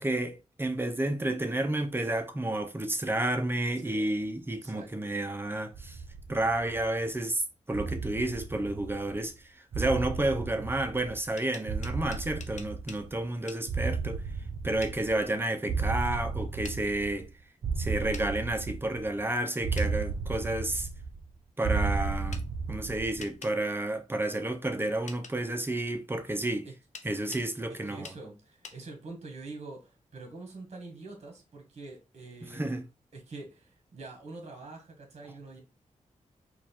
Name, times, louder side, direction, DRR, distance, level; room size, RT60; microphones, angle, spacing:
voice 1, 0.0-6.0 6.3-14.2 14.6-17.3 17.8-20.9 21.6-22.4 22.7-26.7 27.0-28.1 32.5-32.9, right 1 dB, 15° right, 0.5 m, -31 dB
voice 2, 3.8-4.2 4.5-5.2 23.2-23.3 26.6-26.8 27.1-27.4 27.9-32.8 33.1-35.6, right 3 dB, 55° right, 1.5 m, -45 dB
sound 1, 5.7-7.1 7.7-9.3 9.7-11.3 11.7-13.3 13.7-15.3 15.7-17.3 17.6-19.2 19.6-21.3 21.6-23.3, right 4 dB, 70° right, 0.6 m, -34 dB
sound 2, 11.2-13.0 13.5-13.6 14.8-15.0 16.6-16.8 18.1-18.3 19.8-19.9 22.3-22.5 23.2-23.6 25.1-25.4 26.9-27.5 28.0-28.2 28.6-28.8, left 5 dB, 65° left, 0.7 m, -45 dB
4.4 x 2.4 x 4.2 m
wide cardioid pair, 145°, 13 cm